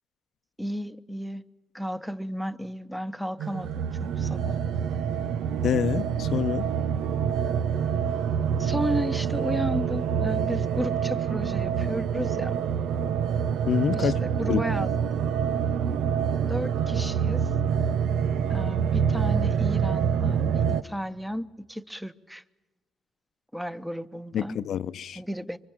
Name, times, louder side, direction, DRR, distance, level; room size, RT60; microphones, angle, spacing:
voice 1, 0.6-1.4 1.7-4.6 8.6-12.6 13.9-15.3 16.4-17.4 18.5-22.4 23.5-24.6 25.1-25.6, equal, 5° right, 1.1 m, -33 dB
sound 1, 3.4-20.8, right 7 dB, 85° right, 0.8 m, -26 dB
voice 2, 5.6-6.7 13.7-14.1 14.5-14.6 24.3-25.2, left 9 dB, 65° left, 0.8 m, -26 dB
25.5 x 25.0 x 7.4 m
cardioid pair, 90°, 0 cm